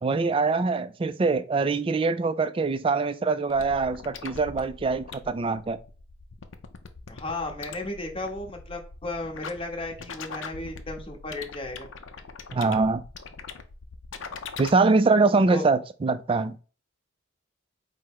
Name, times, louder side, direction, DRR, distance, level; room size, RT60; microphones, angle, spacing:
voice 1, 0.0-5.8 12.5-13.0 14.6-16.6, right 3 dB, 25° right, 0.3 m, -23 dB
sound 1, 3.5-14.7, left 5 dB, 70° left, 0.5 m, -42 dB
voice 2, 7.1-11.9 15.5-15.7, left 2 dB, 30° left, 0.9 m, -34 dB
4.8 x 2.1 x 4.5 m
head